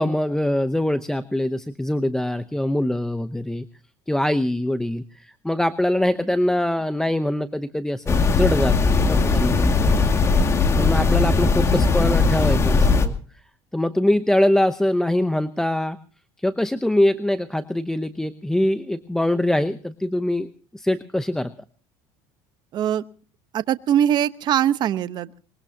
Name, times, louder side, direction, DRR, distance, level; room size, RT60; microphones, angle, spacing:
voice 1, 0.0-3.7 4.1-10.1 10.8-13.1 13.7-16.0 16.4-21.5, left 1 dB, 5° left, 12 dB, 0.8 m, -23 dB
sound 1, 8.1-13.1, left 4 dB, 30° left, 2.2 m, -19 dB
voice 2, 22.7-23.0 23.5-25.4, right 10 dB, 50° right, 13 dB, 1.0 m, -22 dB
23.5 x 22.0 x 2.8 m, 0.40 s
supercardioid pair, 105°, 10 cm